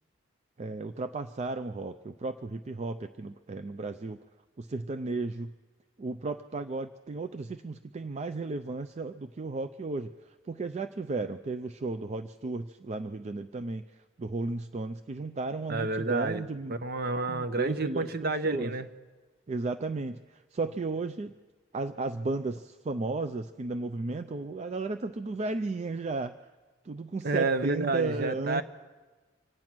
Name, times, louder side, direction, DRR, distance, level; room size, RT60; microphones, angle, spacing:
voice 1, 0.6-4.2 4.6-5.5 6.0-16.8 17.3-18.7 19.5-21.3 21.7-26.4 26.8-28.6, right 3 dB, 35° right, 9 dB, 0.4 m, -34 dB
voice 2, 15.7-16.4 16.7-18.9 27.2-28.6, right 3 dB, 55° right, 10 dB, 0.9 m, -30 dB
25.5 x 8.9 x 6.1 m, 1.3 s
head